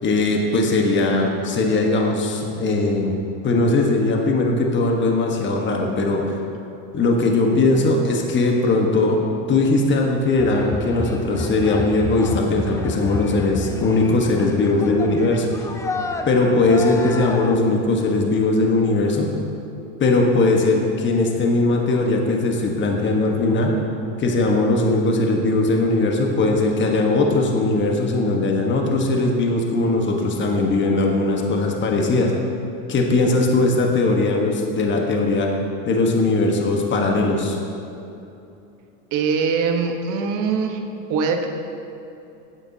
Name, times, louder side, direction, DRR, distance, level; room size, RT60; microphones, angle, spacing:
voice 1, 0.0-3.1 3.4-6.4 6.9-9.2 9.5-15.5 16.3-19.3 20.0-23.7 24.2-32.3 32.9-35.5 35.8-37.6, left 2 dB, 30° left, 1 dB, 1.3 m, -19 dB
sound 1, 10.4-17.6, left 2 dB, 10° left, 0.4 m, -30 dB
voice 2, 39.1-40.8 41.1-41.5, right 5 dB, 50° right, 4 dB, 1.2 m, -22 dB
15.0 x 9.8 x 2.8 m, 2.8 s
supercardioid pair, 110°, 40 cm